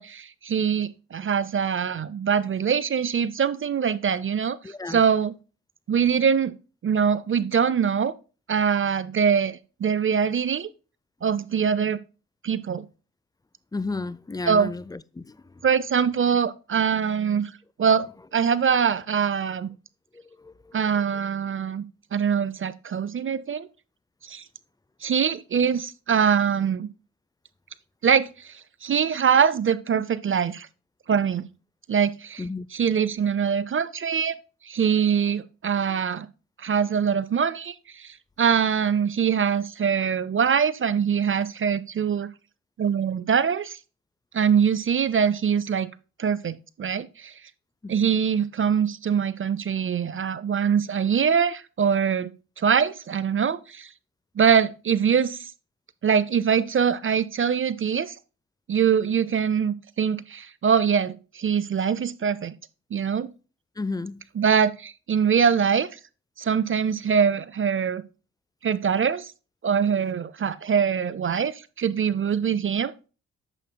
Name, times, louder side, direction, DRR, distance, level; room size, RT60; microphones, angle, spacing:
voice 1, 0.0-5.3 5.9-6.5 6.8-8.1 8.5-10.7 11.2-12.0 12.4-12.9 14.5-14.7 15.6-17.5 17.8-18.1 18.3-19.7 20.7-21.8 22.1-23.7 24.2-24.4 25.0-26.9 28.0-30.7 31.1-31.5 31.9-32.4 32.7-34.4 34.6-36.3 36.6-42.3 42.8-43.8 44.3-45.9 46.2-47.3 47.9-52.3 52.6-53.9 54.4-55.5 56.0-58.2 58.7-62.5 62.9-63.3 64.4-66.0 66.4-68.0 68.6-69.3 69.6-72.9, right 7 dB, 35° right, 0.6 m, -23 dB
voice 2, 4.6-5.0 13.7-15.4 20.4-20.8 32.4-32.7 47.8-47.9 63.8-64.2, left 3 dB, 10° left, 0.5 m, -33 dB
9.0 x 7.3 x 2.2 m
hypercardioid pair, 50°, 34 cm